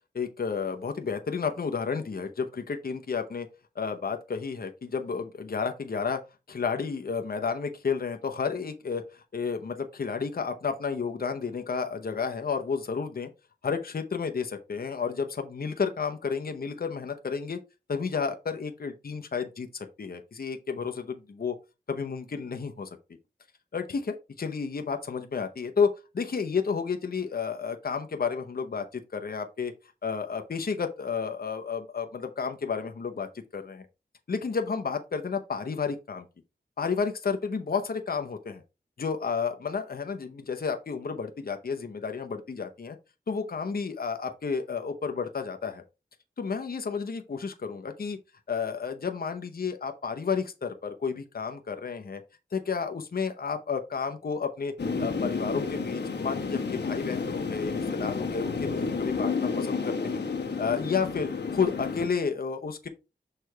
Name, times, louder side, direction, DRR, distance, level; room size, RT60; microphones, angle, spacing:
voice 1, 0.1-3.5 3.8-6.2 6.5-13.3 13.6-17.6 17.9-19.7 20.0-21.6 21.9-22.9 23.7-29.7 30.0-33.9 34.3-36.3 36.8-38.6 39.0-43.0 43.3-45.8 46.4-48.2 48.5-52.2 52.5-54.7 55.0-60.2 60.6-62.9, left 5 dB, 60° left, 6 dB, 0.8 m, -31 dB
sound 1, 54.8-62.1, left 4 dB, 80° left, 1.1 m, -31 dB
6.5 x 3.3 x 4.5 m, 0.28 s
wide cardioid pair, 65°, 18 cm